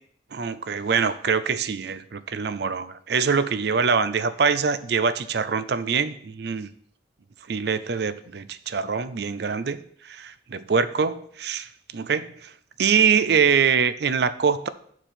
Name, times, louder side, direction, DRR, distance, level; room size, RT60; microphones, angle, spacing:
voice 1, 0.3-6.7 7.5-9.8 10.0-11.7 11.9-12.5 12.8-14.7, right 6 dB, 60° right, 14 dB, 0.5 m, -24 dB
6.8 x 4.6 x 5.7 m, 0.63 s
head